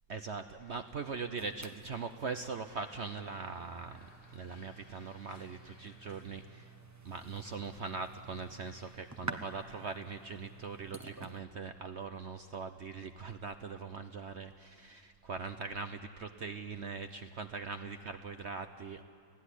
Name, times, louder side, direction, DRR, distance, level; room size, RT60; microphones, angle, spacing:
voice 1, 0.1-6.7 7.0-19.0, right 4 dB, 60° right, 8 dB, 0.7 m, -41 dB
sound 1, 0.6-9.3, left 3 dB, 70° left, 4.1 m, -64 dB
sound 2, 1.4-11.4, right 2 dB, 20° right, 0.5 m, -50 dB
30.0 x 16.0 x 10.0 m, 2.3 s
omnidirectional pair, 2.0 m